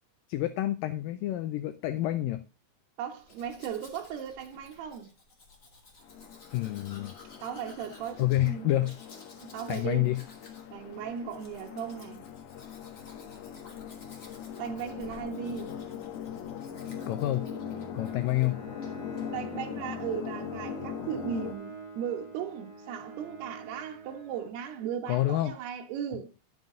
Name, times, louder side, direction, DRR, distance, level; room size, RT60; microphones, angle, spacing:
voice 1, 0.3-2.4 6.5-7.1 8.2-8.9 9.7-10.2 17.1-17.5 18.0-18.6 25.1-25.5, left 15 dB, 90° left, 1.9 m, -28 dB
voice 2, 3.0-5.1 7.4-8.7 9.4-10.2 10.7-12.2 14.6-15.8 19.3-26.3, right 8 dB, 80° right, 3.3 m, -37 dB
Domestic sounds home sounds, 3.1-18.5 18.8-19.3, left 3 dB, 25° left, 1.8 m, -55 dB
sound 1, 6.0-21.5, left 8 dB, 70° left, 2.0 m, -41 dB
Bowed string instrument, 16.7-24.9, right 3 dB, 15° right, 3.1 m, -46 dB
11.0 x 7.5 x 3.8 m
omnidirectional pair, 4.7 m